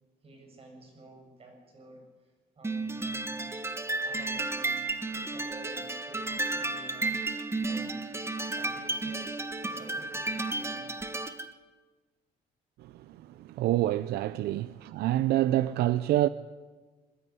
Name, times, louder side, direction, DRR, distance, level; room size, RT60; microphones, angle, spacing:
voice 1, 0.2-3.6 4.0-7.2 7.6-8.1 8.5-9.3 9.6-10.9, right 2 dB, 35° right, 7.9 m, -51 dB
sound 1, 2.6-11.5, right 2 dB, 15° right, 1.3 m, -33 dB
voice 2, 12.8-16.3, right 14 dB, 75° right, 0.6 m, -27 dB
21.5 x 12.5 x 9.8 m
cardioid pair, 110°, 17 cm